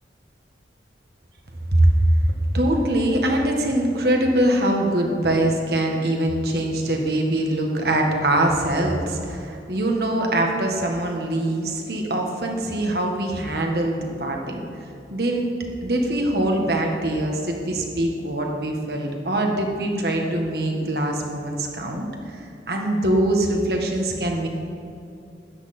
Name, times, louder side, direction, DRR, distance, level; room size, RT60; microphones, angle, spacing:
voice 1, 2.5-14.6 15.1-15.5 15.8-24.5, right 1 dB, 60° right, 1 dB, 1.6 m, -23 dB
13.0 x 10.0 x 4.4 m, 2.6 s
head